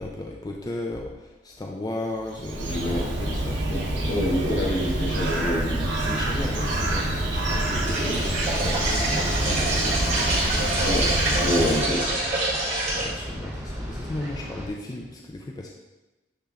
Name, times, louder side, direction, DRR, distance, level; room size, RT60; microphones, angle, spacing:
voice 1, 0.0-3.6 5.9-10.5 13.0-15.7, left 2 dB, 20° left, 0 dB, 0.4 m, -35 dB
Bird, 2.2-12.2, right 1 dB, 80° right, 1.1 m, -27 dB
voice 2, 2.6-3.1 3.7-6.2 8.0-8.2 10.8-12.3, left 1 dB, 70° left, -4 dB, 1.7 m, -28 dB
sound 1, 6.2-14.7, equal, 15° right, 1.3 m, -35 dB
sound 2, 7.8-13.1, right 2 dB, 40° right, 2.1 m, -26 dB
8.7 x 3.0 x 3.7 m, 1.1 s
head